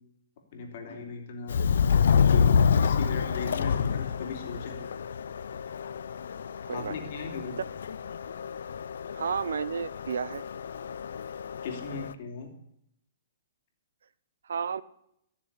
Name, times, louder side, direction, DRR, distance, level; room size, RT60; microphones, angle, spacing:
voice 1, 0.5-1.6 2.1-4.8 6.7-7.6 11.6-12.5, left 4 dB, 55° left, 3 dB, 3.1 m, -38 dB
Subway metro underground, 1.5-12.1, left 6 dB, 75° left, 0.6 m, -28 dB
voice 2, 9.1-10.4 14.4-14.8, right 6 dB, 80° right, 17 dB, 0.7 m, -32 dB
14.0 x 7.0 x 8.3 m, 0.76 s
hypercardioid pair, 140°, 0 cm